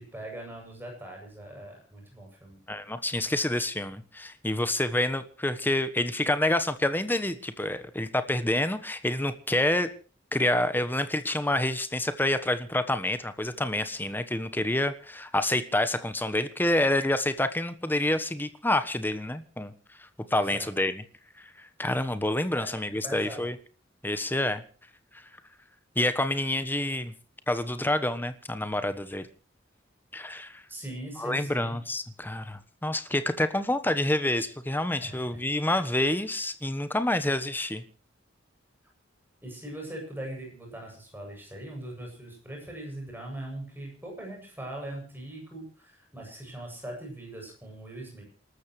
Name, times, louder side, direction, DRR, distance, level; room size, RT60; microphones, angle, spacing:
voice 1, 0.0-2.6 20.3-20.7 22.5-23.5 30.7-31.8 35.0-35.4 39.4-48.2, right 1 dB, 10° right, 0 dB, 7.8 m, -41 dB
voice 2, 2.7-9.9 10.3-19.7 20.0-21.0 21.4-23.5 24.0-24.6 26.0-27.1 27.5-29.3 30.1-30.6 31.2-37.8, left 1 dB, 10° left, 11 dB, 1.2 m, -28 dB
28.5 x 13.0 x 3.2 m, 0.37 s
head